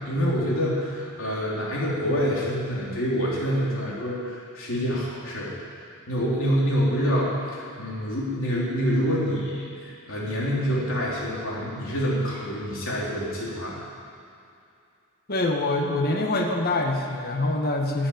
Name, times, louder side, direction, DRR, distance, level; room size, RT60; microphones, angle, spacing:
voice 1, 0.0-5.7 6.1-9.7 10.1-13.8, equal, 60° left, -5 dB, 3.5 m, -26 dB
voice 2, 15.3-18.1, left 2 dB, 45° left, 2 dB, 1.4 m, -25 dB
13.0 x 8.5 x 9.1 m, 2.5 s
head